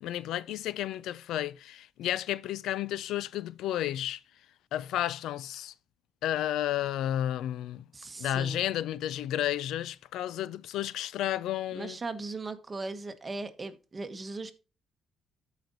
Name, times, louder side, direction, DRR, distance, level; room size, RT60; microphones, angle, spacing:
voice 1, 0.0-4.2 4.7-5.7 6.2-7.8 8.2-12.0, left 12 dB, 85° left, 0.3 m, -32 dB
voice 2, 7.9-8.6 11.7-14.5, right 3 dB, 30° right, 1.1 m, -38 dB
13.5 x 5.1 x 2.6 m
cardioid pair, 90°, 0 cm